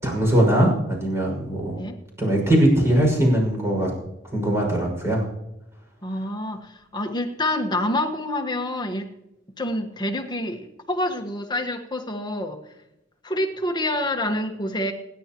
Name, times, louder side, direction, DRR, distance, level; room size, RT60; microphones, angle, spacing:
voice 1, 0.0-1.8 2.2-3.9 4.3-5.2, right 1 dB, 15° right, -1 dB, 6.0 m, -20 dB
voice 2, 6.0-9.1 9.6-12.6 13.2-14.9, left 1 dB, 25° left, 4 dB, 1.4 m, -27 dB
28.0 x 10.5 x 3.0 m, 0.90 s
head